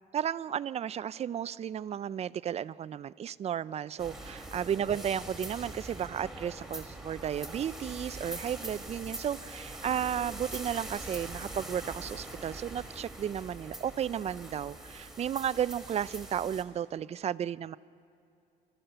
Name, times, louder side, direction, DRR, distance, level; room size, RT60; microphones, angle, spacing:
voice 1, 0.1-17.8, right 9 dB, 40° right, 17 dB, 0.4 m, -33 dB
sound 1, 4.0-16.6, right 1 dB, ahead, 2.7 m, -43 dB
28.0 x 14.5 x 6.8 m, 2.5 s
cardioid pair, 110°, 17 cm